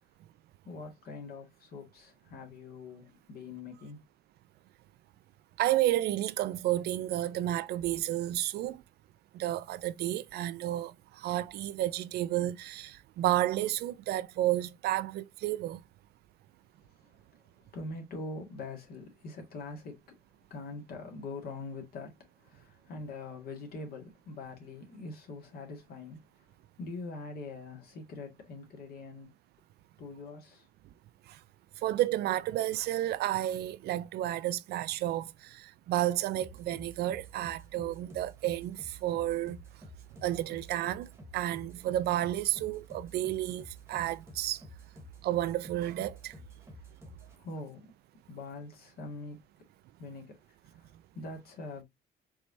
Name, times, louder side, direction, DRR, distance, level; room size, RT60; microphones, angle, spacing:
voice 1, 0.7-4.0 17.0-17.1 17.7-20.0 20.5-26.5 26.8-29.3 30.0-30.7 47.3-47.9 48.3-49.4 50.0-50.4 50.7-51.8, left 3 dB, 65° left, 1.8 m, -43 dB
voice 2, 5.6-8.8 9.3-10.9 11.2-15.8 31.8-39.6 40.2-44.6 45.2-46.3, right 14 dB, 70° right, 0.4 m, -31 dB
sound 1, 36.4-47.4, right 1 dB, 15° right, 1.1 m, -51 dB
4.6 x 3.2 x 2.6 m
cardioid pair, 115°, 17 cm